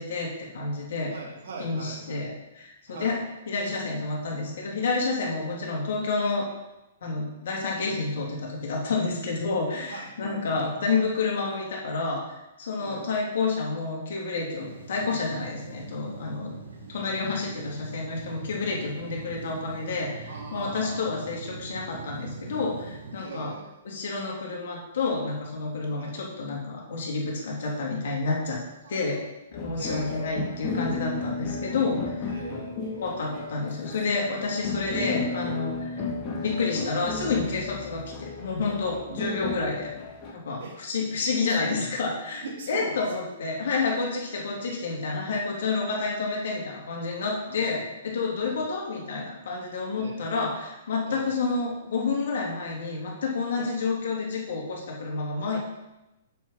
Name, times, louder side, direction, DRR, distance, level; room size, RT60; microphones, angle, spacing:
voice 1, 0.0-1.1 1.6-3.2 3.5-6.5 7.0-16.5 16.9-23.5 23.8-28.6 28.9-29.2 29.5-32.3 33.0-36.0 36.4-39.9 40.3-55.6, left 3 dB, 65° left, -2 dB, 3.1 m, -29 dB
voice 2, 1.1-2.3 2.9-3.2 9.8-10.7 12.8-13.1 20.3-21.0 23.2-23.7 25.9-26.2 28.8-29.0 29.7-30.4 32.3-33.1 34.7-35.0 36.0-36.1 39.1-39.5 40.6-40.8 41.2-41.7 42.4-42.9 44.5-44.6 47.5-48.0 48.4-48.6 50.0-50.3 51.0-51.4 53.5-53.7, right 4 dB, 60° right, -1 dB, 2.7 m, -41 dB
sound 1, 14.6-23.2, right 4 dB, 80° right, 2.6 m, -42 dB
sound 2, 29.5-40.3, left 4 dB, 30° left, 2.9 m, -34 dB
7.4 x 7.0 x 5.7 m, 0.95 s
hypercardioid pair, 120°, 0 cm